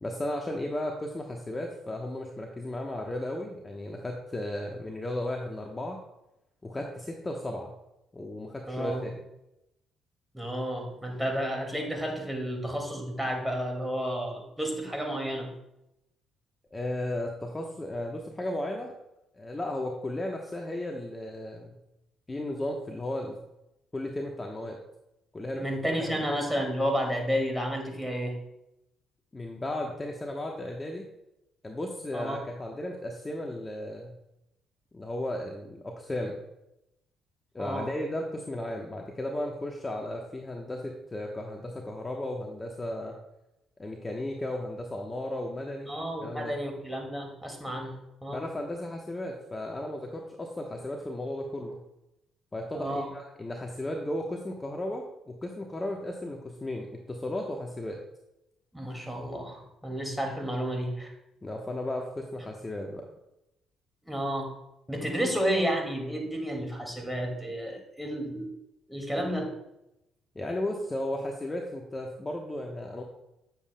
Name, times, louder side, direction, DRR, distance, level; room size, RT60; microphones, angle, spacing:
voice 1, 0.0-6.0 6.6-7.7 8.1-9.1 16.7-18.9 19.3-21.7 22.3-23.4 23.9-24.8 25.3-26.2 29.3-31.1 31.6-34.1 34.9-36.4 37.5-43.1 43.8-45.9 46.2-46.6 48.3-51.8 52.5-58.0 61.4-63.1 70.3-73.0, left 1 dB, 20° left, 1 dB, 1.0 m, -35 dB
voice 2, 8.7-9.0 10.3-15.5 25.5-28.3 32.1-32.4 37.6-37.9 45.9-48.4 52.7-53.1 58.7-61.1 64.1-64.5 64.9-68.5 68.9-69.5, equal, 5° right, 1 dB, 2.1 m, -31 dB
9.4 x 7.3 x 2.2 m, 0.87 s
supercardioid pair, 65°, 0 cm